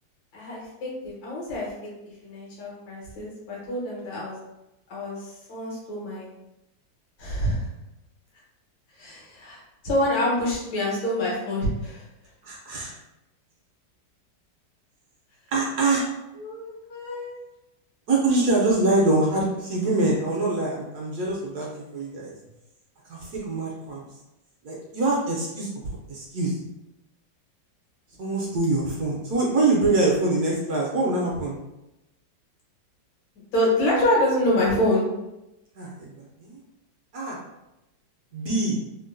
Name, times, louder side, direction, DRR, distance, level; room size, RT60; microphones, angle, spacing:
voice 1, 0.3-1.9 2.2-4.4 4.9-6.3 7.2-7.7 9.0-12.0 16.4-17.4 33.5-35.1, left 1 dB, 85° left, -5 dB, 1.8 m, -26 dB
voice 2, 12.4-12.9 15.5-16.1 18.1-22.3 23.1-24.0 24.6-26.6 28.2-31.5 35.7-36.6 37.1-37.4 38.3-38.8, right 2 dB, 70° right, -3 dB, 1.0 m, -24 dB
3.7 x 2.0 x 2.5 m, 0.93 s
omnidirectional pair, 2.0 m